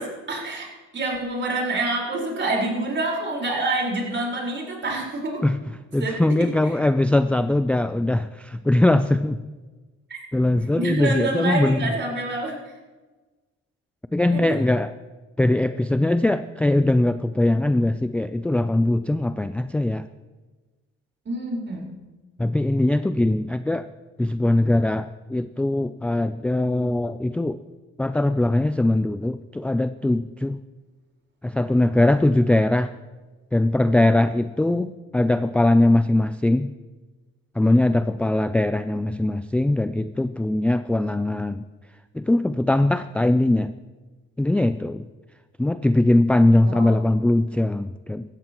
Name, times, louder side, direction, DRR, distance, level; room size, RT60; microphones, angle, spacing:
voice 1, 0.0-5.5 6.0-6.8 10.1-10.2 10.8-12.7 14.3-14.6 21.2-21.9 46.6-47.0, right 2 dB, 40° right, -1 dB, 4.6 m, -27 dB
voice 2, 5.9-9.4 10.3-11.9 14.1-14.9 15.4-20.0 22.4-23.9 24.2-27.6 28.0-30.6 31.4-32.9 33.5-36.7 37.6-41.6 42.1-43.7 44.4-45.0 45.6-48.2, left 1 dB, 5° left, 11 dB, 0.3 m, -21 dB
17.0 x 14.0 x 3.0 m, 1.2 s
cardioid pair, 95°, 29 cm